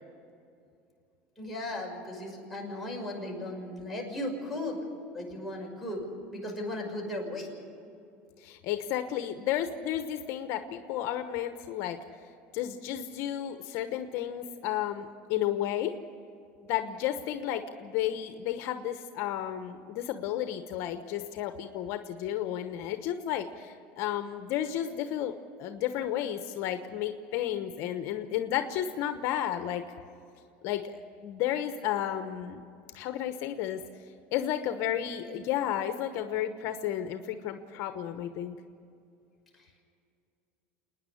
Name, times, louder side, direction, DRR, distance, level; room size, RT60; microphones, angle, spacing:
voice 1, 1.4-4.8 5.1-6.0 6.3-7.5 39.6-39.7, left 1 dB, ahead, 0 dB, 6.1 m, -36 dB
voice 2, 8.4-12.0 12.5-15.9 16.6-25.3 25.6-29.8 30.6-32.6 32.9-33.8 34.3-38.5, left 11 dB, 60° left, 8 dB, 1.0 m, -32 dB
27.5 x 10.0 x 9.9 m, 2.5 s
supercardioid pair, 120°, 5 cm